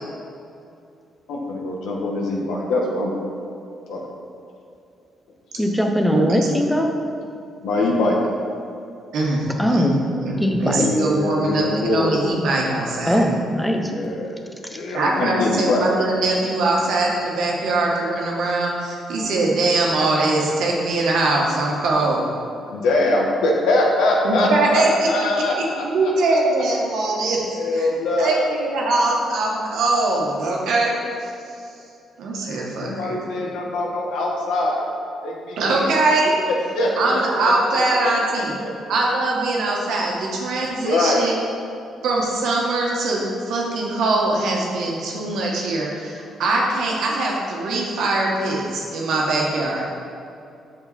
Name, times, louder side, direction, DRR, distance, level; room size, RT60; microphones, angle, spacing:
voice 1, 1.3-3.2 3.9-4.0 7.6-8.2 10.7-12.2 13.9-14.3 14.7-15.9 22.7-26.1 27.5-28.6 32.6-34.9 35.2-35.9 36.4-38.1 38.6-38.7 39.7-39.9 40.8-41.2, left 2 dB, 85° left, -1 dB, 1.4 m, -23 dB
voice 2, 5.6-6.9 9.6-9.9 10.4-10.9 13.1-13.8, equal, 5° left, 3 dB, 0.9 m, -20 dB
voice 3, 6.1-6.6 9.1-13.2 14.9-22.3 24.2-25.1 25.6-27.4 27.7-27.9 28.2-31.3 32.2-33.2 35.6-36.3 37.0-38.5 38.9-41.4 42.0-49.9, right 2 dB, 75° right, -2 dB, 1.6 m, -22 dB
7.7 x 6.1 x 4.2 m, 2.5 s
cardioid pair, 90°, 0 cm